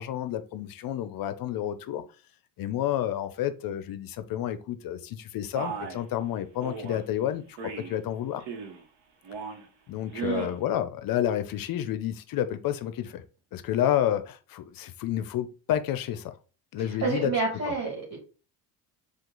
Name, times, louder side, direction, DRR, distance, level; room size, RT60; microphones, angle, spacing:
voice 1, 0.0-2.0 2.6-7.6 7.9-8.4 9.9-13.2 13.5-16.3 16.7-17.3 17.7-17.8, left 11 dB, 50° left, 0.6 m, -30 dB
Male speech man speaking, 5.6-6.0 6.6-7.0 7.6-8.0 8.4-8.8 9.2-9.7 10.1-10.5, right 4 dB, 65° right, 1.1 m, -37 dB
voice 2, 10.2-10.5 16.8-18.2, right 4 dB, 35° right, 2.0 m, -29 dB
4.5 x 2.4 x 3.8 m
supercardioid pair, 90°, 44 cm